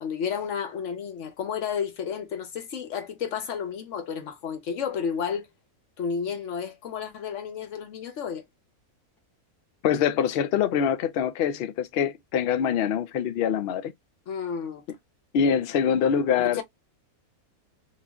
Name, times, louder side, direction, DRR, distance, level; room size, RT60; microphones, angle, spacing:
voice 1, 0.0-5.5 6.0-8.4 14.3-14.8 16.4-16.6, left 7 dB, 60° left, 1.1 m, -31 dB
voice 2, 9.8-13.9 15.3-16.6, left 8 dB, 90° left, 0.5 m, -24 dB
3.0 x 2.5 x 2.2 m
omnidirectional pair, 1.6 m